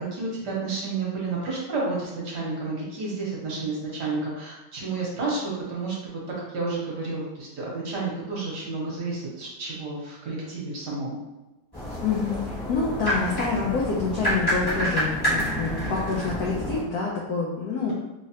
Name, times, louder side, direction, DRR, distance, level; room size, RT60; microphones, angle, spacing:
voice 1, 0.0-6.2 6.5-11.2, right 3 dB, 60° right, -5 dB, 1.5 m, -31 dB
sound 1, 11.7-16.8, equal, 25° left, 0.5 m, -28 dB
voice 2, 12.0-17.9, left 4 dB, 75° left, -3 dB, 0.8 m, -27 dB
3.6 x 3.1 x 2.8 m, 1.0 s
omnidirectional pair, 2.3 m